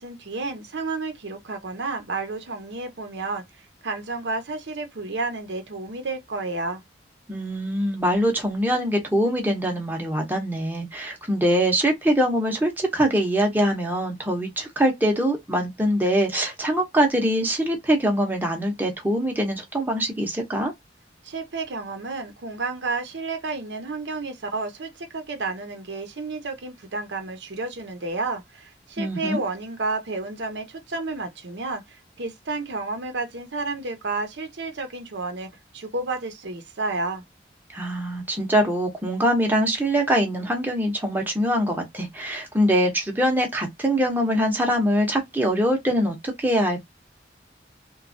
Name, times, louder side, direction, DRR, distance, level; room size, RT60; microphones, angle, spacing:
voice 1, 0.0-3.4 3.8-6.8 21.2-37.2, right 3 dB, 85° right, 0.8 m, -31 dB
voice 2, 7.3-20.7 29.0-29.4 37.7-46.9, equal, 10° right, 0.7 m, -23 dB
3.0 x 2.3 x 2.6 m
head